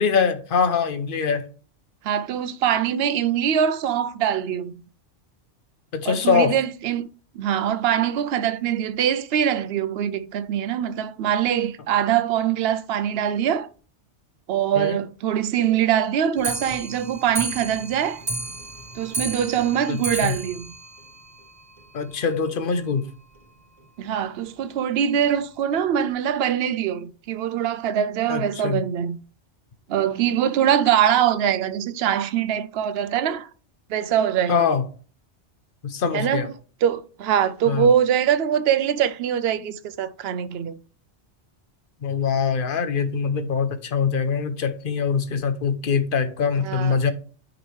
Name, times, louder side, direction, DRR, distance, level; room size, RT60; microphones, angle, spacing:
voice 1, 0.0-1.5 5.9-6.6 14.8-15.0 19.9-20.3 21.9-23.1 28.3-28.8 34.5-34.8 35.8-36.5 37.7-37.9 42.0-47.1, left 6 dB, 50° left, 0.9 m, -23 dB
voice 2, 2.0-4.8 6.0-7.1 7.3-13.7 14.5-18.2 18.9-20.7 24.0-29.2 29.9-33.5 33.9-34.7 36.1-36.5 36.8-40.8 46.6-47.0, right 9 dB, 65° right, 0.8 m, -23 dB
Clock, 16.4-21.9 22.2-22.3 22.6-22.7 23.0-23.1 23.3-23.4 24.1-24.2 24.9-25.0 25.7-25.8, right 2 dB, 35° right, 0.8 m, -33 dB
9.3 x 5.1 x 3.2 m
omnidirectional pair, 1.2 m